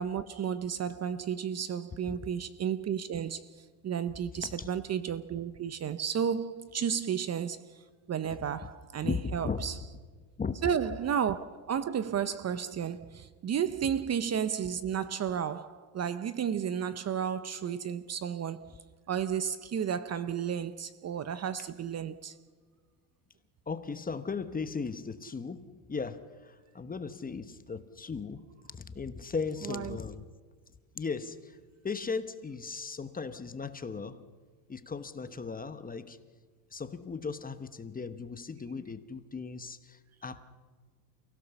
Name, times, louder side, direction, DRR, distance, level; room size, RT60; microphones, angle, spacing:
voice 1, 0.0-9.8 10.6-18.7 19.1-22.4 29.6-30.0, right 8 dB, 30° right, 0.8 m, -33 dB
voice 2, 9.0-9.7 10.4-10.6 23.7-30.2 30.9-31.6 31.8-34.2 34.7-36.2 36.7-40.4, left 5 dB, 15° left, 1.1 m, -37 dB
29.0 x 16.5 x 7.0 m
cardioid pair, 120°, 49 cm